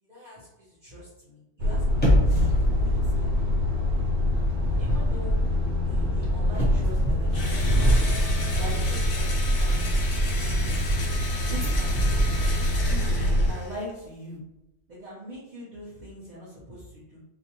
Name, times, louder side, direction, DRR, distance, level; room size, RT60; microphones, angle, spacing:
voice 1, 0.0-3.5 4.8-5.4 5.8-8.1 8.6-10.8 11.5-14.4 14.9-17.2, equal, 45° right, -8 dB, 0.7 m, -42 dB
Truck, 1.6-13.5, equal, 80° right, 0.9 m, -24 dB
sound 1, 1.9-4.2 4.4-4.7 6.0-8.3 11.5-13.4 13.7-13.8, equal, 10° left, 0.5 m, -28 dB
Engine / Drill, 7.3-13.9, left 3 dB, 55° left, 0.7 m, -36 dB
2.4 x 2.1 x 2.7 m, 0.92 s
omnidirectional pair, 1.2 m